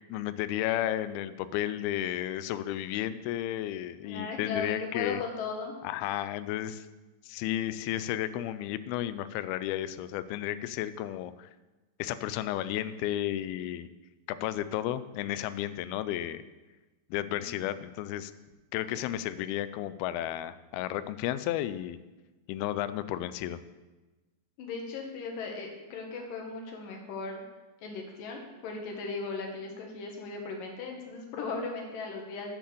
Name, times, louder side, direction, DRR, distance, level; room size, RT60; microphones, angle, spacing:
voice 1, 0.1-5.2 5.8-6.9 7.3-11.5 12.0-13.9 14.3-16.4 17.1-18.3 18.7-22.0 22.5-23.6, left 12 dB, 85° left, 14 dB, 2.4 m, -33 dB
voice 2, 4.0-5.7 17.2-17.5 24.6-27.4 27.8-32.5, left 4 dB, 65° left, 1 dB, 3.2 m, -37 dB
9.8 x 7.5 x 6.9 m, 1.2 s
omnidirectional pair, 4.4 m